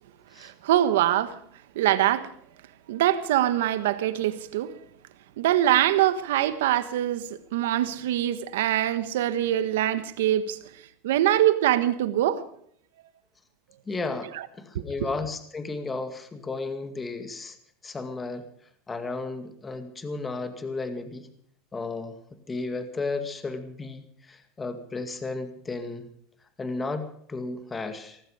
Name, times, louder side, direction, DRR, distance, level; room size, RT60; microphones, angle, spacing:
voice 1, 0.4-1.4 1.7-2.3 2.9-4.7 5.4-7.2 7.5-10.6 11.0-12.4, right 12 dB, 90° right, 1.4 m, -23 dB
voice 2, 13.9-14.3 14.6-17.6 17.8-18.4 18.9-21.3 21.7-22.2 22.5-26.1 26.6-28.2, left 3 dB, 15° left, 2.1 m, -33 dB
18.5 x 15.0 x 5.0 m
supercardioid pair, 130°, 0 cm